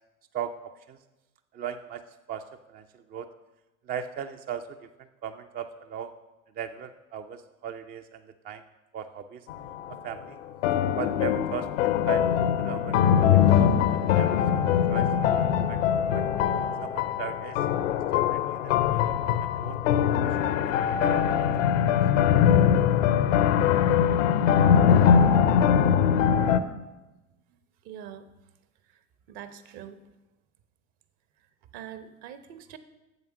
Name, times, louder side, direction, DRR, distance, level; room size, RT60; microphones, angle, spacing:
voice 1, 0.3-1.0 1.5-3.3 3.8-6.1 6.5-8.6 8.9-9.5 9.9-10.4 11.0-14.6 14.9-15.4 15.7-15.8 16.1-16.2 16.8-17.7 18.1-19.8 20.1-21.9, right 8 dB, 25° right, 8 dB, 0.4 m, -39 dB
sound 1, 9.5-10.0 10.6-26.6, left 8 dB, 65° left, 0.7 m, -22 dB
voice 2, 27.8-28.2 29.3-30.0 31.7-32.8, right 9 dB, 50° right, 11 dB, 1.0 m, -43 dB
8.0 x 7.2 x 6.2 m, 1.1 s
figure-of-eight pair, 75°, 41 cm